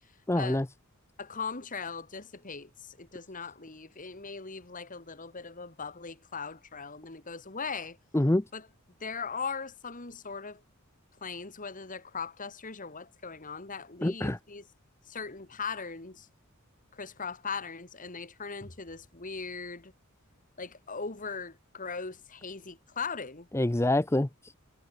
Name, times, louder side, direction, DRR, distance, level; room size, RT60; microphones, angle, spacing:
voice 1, 0.3-0.7 8.1-8.4 14.0-14.4 23.5-24.6, left 1 dB, 10° left, 0.6 m, -26 dB
voice 2, 1.2-8.0 8.5-8.7 9.0-10.6 11.2-14.6 15.1-16.3 16.9-19.9 20.6-23.5, left 5 dB, 40° left, 2.3 m, -39 dB
head